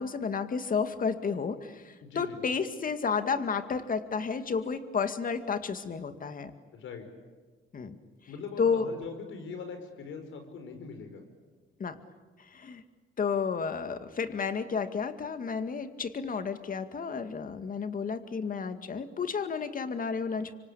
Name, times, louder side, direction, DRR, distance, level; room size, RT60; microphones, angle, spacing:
voice 1, 0.0-6.5 7.7-8.0 8.6-8.9 11.8-12.0 12.5-12.8 13.2-20.5, left 5 dB, 45° left, 9 dB, 2.2 m, -31 dB
voice 2, 2.0-2.4 6.7-7.1 8.3-11.2, left 5 dB, 75° left, 7 dB, 5.4 m, -41 dB
25.5 x 25.5 x 8.7 m, 1.4 s
cardioid pair, 90°, 20 cm